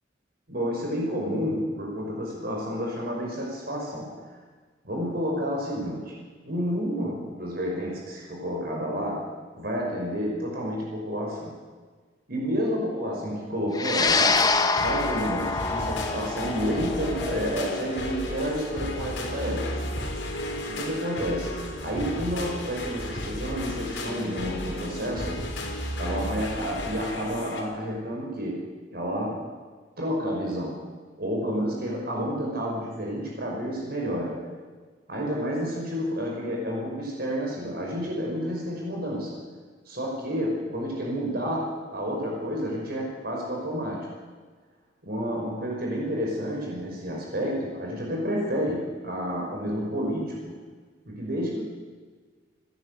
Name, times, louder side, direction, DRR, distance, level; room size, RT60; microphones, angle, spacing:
voice 1, 0.5-4.2 4.8-6.1 6.5-9.2 9.6-11.6 12.3-14.4 14.8-19.8 20.6-25.4 26.0-28.6 28.9-29.4 30.0-30.8 31.2-34.5 35.1-39.4 39.9-44.1 45.0-50.6 51.1-51.6, equal, 55° right, -2 dB, 5.6 m, -30 dB
sound 1, 13.7-22.3, left 4 dB, 20° left, 0.9 m, -28 dB
sound 2, 14.1-27.6, left 1 dB, 85° left, 4.4 m, -34 dB
29.0 x 11.5 x 8.3 m, 1.5 s
head